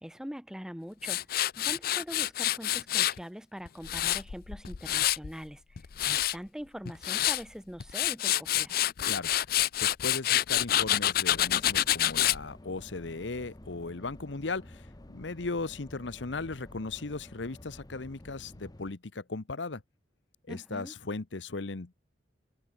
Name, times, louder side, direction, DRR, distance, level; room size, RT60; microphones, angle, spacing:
voice 1, 0.0-1.2 1.6-8.8 20.5-20.9, equal, 5° right, 1.1 m, -43 dB
Tools, 1.0-3.2 3.7-5.3 5.8-6.3 6.9-7.4 7.8-12.4, left 13 dB, 55° left, 0.5 m, -27 dB
voice 2, 9.8-19.8 20.5-21.9, left 3 dB, 85° left, 1.1 m, -37 dB
sound 1, 11.3-18.9, left 1 dB, 20° left, 1.0 m, -50 dB
head